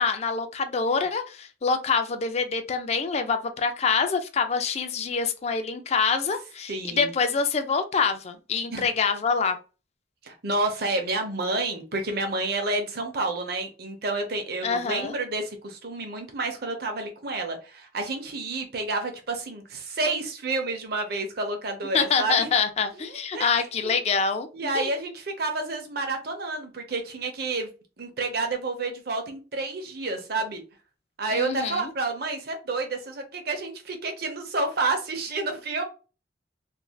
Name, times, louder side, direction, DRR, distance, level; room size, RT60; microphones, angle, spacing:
voice 1, 0.0-9.6 14.6-15.2 21.9-24.9 31.3-31.9, left 5 dB, 35° left, 8 dB, 0.3 m, -26 dB
voice 2, 6.7-7.1 8.7-8.9 10.2-22.5 23.3-23.5 23.8-23.9 24.5-27.7 28.0-30.6 31.2-35.8, right 3 dB, 55° right, 5 dB, 0.7 m, -29 dB
3.1 x 2.6 x 2.2 m, 0.33 s
head